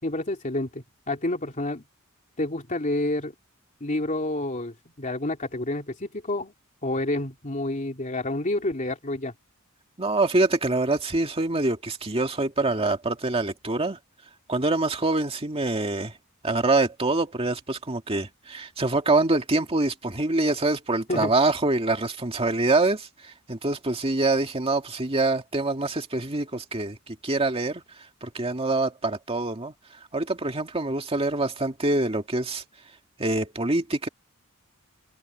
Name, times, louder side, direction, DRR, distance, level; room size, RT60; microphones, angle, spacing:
voice 1, 0.0-1.8 2.4-3.3 3.8-6.5 6.8-9.3 21.1-21.3, left 2 dB, 35° left, 3.1 m, -29 dB
voice 2, 10.0-14.0 14.5-16.2 16.4-32.6 33.2-34.1, right 2 dB, 25° right, 2.1 m, -25 dB
head